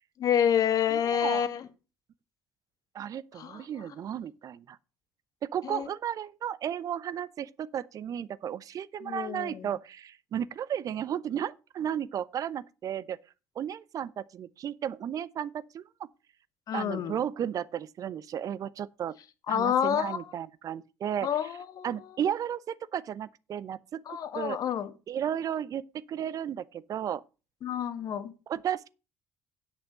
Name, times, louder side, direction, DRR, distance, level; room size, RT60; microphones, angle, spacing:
voice 1, 0.2-1.7 3.3-3.9 5.6-5.9 9.0-9.7 16.7-17.2 19.5-20.3 21.2-22.0 24.1-24.9 27.6-28.3, left 9 dB, 50° left, 1.4 m, -28 dB
voice 2, 0.9-1.5 2.9-4.8 5.4-13.2 13.6-16.1 16.7-19.1 19.5-21.3 21.8-24.6 25.1-27.2 28.5-28.9, right 9 dB, 50° right, 0.6 m, -34 dB
8.3 x 6.6 x 6.5 m
hypercardioid pair, 50°, 8 cm